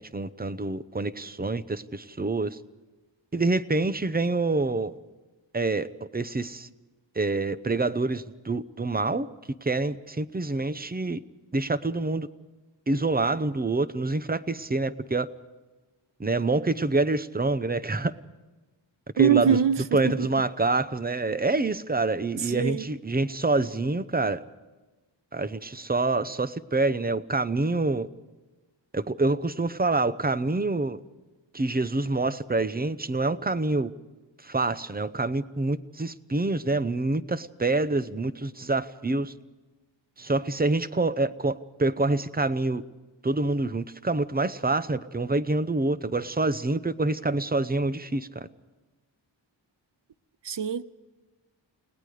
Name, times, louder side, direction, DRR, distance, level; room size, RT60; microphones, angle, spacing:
voice 1, 0.0-2.6 3.3-4.9 5.5-5.9 6.1-6.7 7.1-9.3 9.6-11.2 11.5-12.3 12.9-15.3 16.2-18.2 19.2-19.6 19.9-24.4 25.3-28.1 28.9-31.0 31.5-33.9 34.4-39.3 40.2-42.8 43.2-48.5, right 3 dB, 20° right, 0.8 m, -26 dB
voice 2, 19.2-20.3 22.3-22.9 50.4-50.8, right 7 dB, 65° right, 0.9 m, -24 dB
30.0 x 19.0 x 5.0 m
wide cardioid pair, 105°, 46 cm